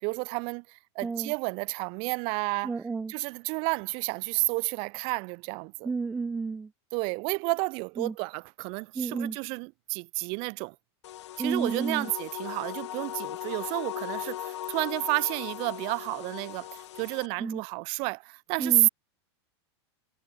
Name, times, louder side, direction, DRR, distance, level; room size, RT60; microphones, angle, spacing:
voice 1, 0.0-2.7 3.1-5.9 6.9-10.8 11.4-18.9, right 32 dB, 40° right, 1.5 m, -31 dB
voice 2, 1.0-1.3 2.6-3.1 5.8-6.7 8.0-8.1 9.0-9.4 11.4-12.1 17.4-17.6 18.6-18.9, right 4 dB, 5° right, 0.4 m, -31 dB
sound 1, 11.0-17.3, left 13 dB, 85° left, 0.6 m, -38 dB
supercardioid pair, 160°, 14 cm